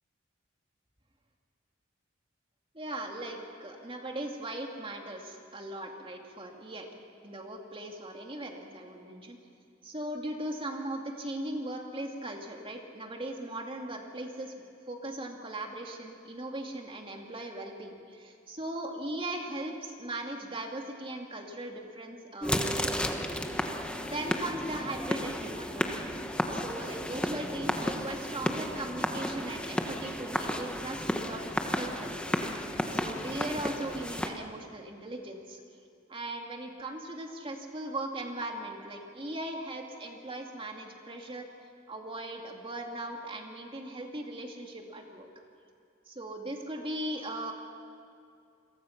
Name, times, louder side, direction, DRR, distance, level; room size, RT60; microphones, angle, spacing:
voice 1, 2.7-7.0 7.2-9.4 9.8-14.5 14.9-23.3 24.0-32.3 32.6-35.6 36.1-41.4 41.9-45.3 46.2-47.5, right 1 dB, 30° right, 2 dB, 2.4 m, -39 dB
sound 1, 22.4-34.3, equal, 5° left, 1.2 m, -33 dB
29.5 x 22.5 x 5.9 m, 2.4 s
head